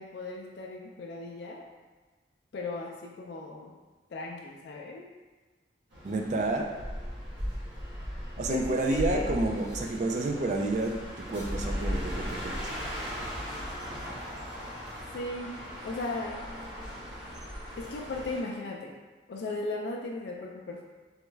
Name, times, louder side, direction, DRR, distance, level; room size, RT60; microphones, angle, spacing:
voice 1, 0.0-1.6 2.5-3.7 4.1-5.1 8.4-9.4 15.1-16.4 17.8-19.0 19.3-20.8, left 2 dB, 65° left, 0 dB, 0.3 m, -37 dB
sound 1, 5.9-18.4, equal, 80° right, 1.1 m, -37 dB
voice 2, 6.0-6.7 8.4-11.0 11.3-12.7, right 2 dB, 40° right, 2 dB, 0.3 m, -29 dB
3.4 x 2.2 x 3.0 m, 1.3 s
head